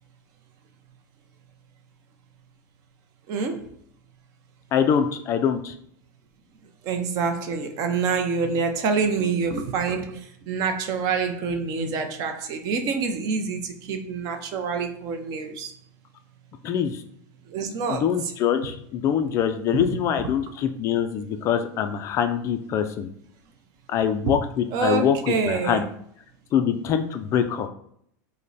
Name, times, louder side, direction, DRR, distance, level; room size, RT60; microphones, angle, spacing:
voice 1, 3.3-3.7 6.8-15.7 17.5-18.1 19.7-19.8 24.2-24.3 24.7-25.8, right 5 dB, 40° right, 0.7 m, -26 dB
voice 2, 4.7-5.7 16.6-17.0 17.9-23.1 23.9-25.9 26.5-27.7, left 8 dB, 30° left, 0.3 m, -24 dB
5.2 x 2.1 x 4.0 m
supercardioid pair, 155°, 10 cm